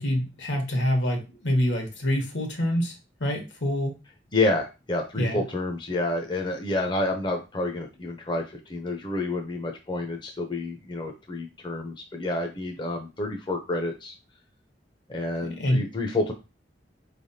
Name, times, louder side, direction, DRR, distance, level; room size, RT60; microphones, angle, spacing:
voice 1, 0.0-4.0 5.2-5.4 15.6-15.8, equal, 80° left, 2 dB, 1.3 m, -26 dB
voice 2, 4.3-14.1 15.1-16.3, left 2 dB, 25° left, 3 dB, 0.6 m, -29 dB
4.2 x 3.3 x 2.7 m, 0.28 s
head